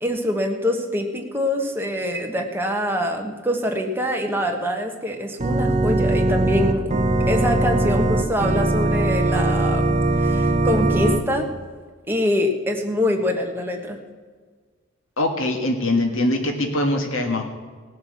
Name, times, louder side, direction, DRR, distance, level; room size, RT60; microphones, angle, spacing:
voice 1, 0.0-7.0 7.3-11.5 12.1-14.0, left 1 dB, 10° right, 2 dB, 1.4 m, -24 dB
Organ, 5.4-11.2, right 2 dB, 30° right, 0.9 m, -20 dB
voice 2, 15.2-17.4, left 1 dB, 75° left, 4 dB, 1.5 m, -22 dB
18.0 x 6.5 x 7.4 m, 1.5 s
head